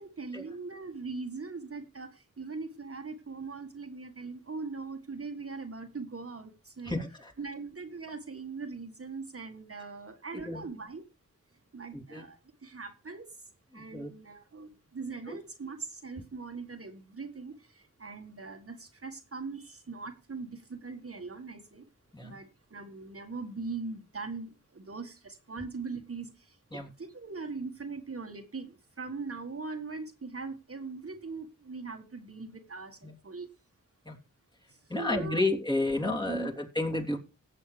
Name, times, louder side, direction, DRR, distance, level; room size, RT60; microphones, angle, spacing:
voice 1, 0.0-7.0 7.4-11.1 11.7-13.4 13.7-21.8 22.2-33.5 34.7-35.5 36.0-36.6, right 4 dB, 45° right, 1.7 m, -41 dB
voice 2, 6.8-7.3 10.3-10.6 11.9-12.2 13.7-14.1 15.3-15.4 22.1-22.4 26.7-26.9 33.0-33.1 34.0-34.2 34.9-37.2, left 2 dB, 15° left, 3.2 m, -31 dB
17.5 x 7.5 x 3.4 m
cardioid pair, 50°, 31 cm